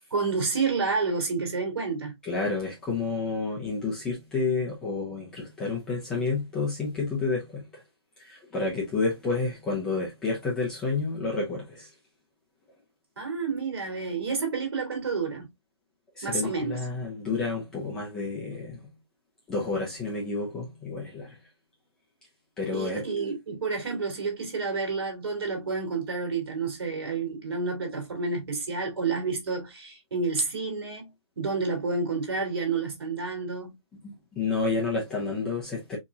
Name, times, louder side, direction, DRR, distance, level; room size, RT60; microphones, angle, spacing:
voice 1, 0.1-2.1 13.2-15.5 16.2-16.8 22.7-31.1 31.4-33.8, right 4 dB, 55° right, 2.8 m, -29 dB
voice 2, 2.2-7.7 8.2-11.9 16.1-18.9 19.5-21.4 22.6-23.0 34.0-36.0, left 3 dB, 5° left, 0.5 m, -30 dB
6.6 x 2.9 x 2.3 m
hypercardioid pair, 170°, 15 cm